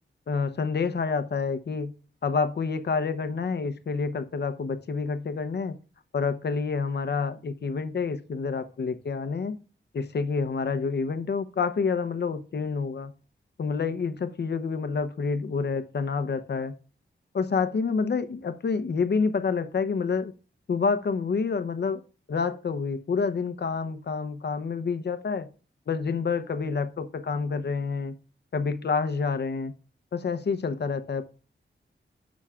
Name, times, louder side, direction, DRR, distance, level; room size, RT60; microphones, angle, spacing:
voice 1, 0.3-1.9 2.2-5.8 6.1-9.6 9.9-13.1 13.6-16.7 17.3-20.3 20.7-22.0 22.3-25.5 25.9-28.1 28.5-29.7 30.1-31.2, left 5 dB, 60° left, 0.7 m, -28 dB
10.0 x 6.3 x 2.4 m
wide cardioid pair, 135°, 20 cm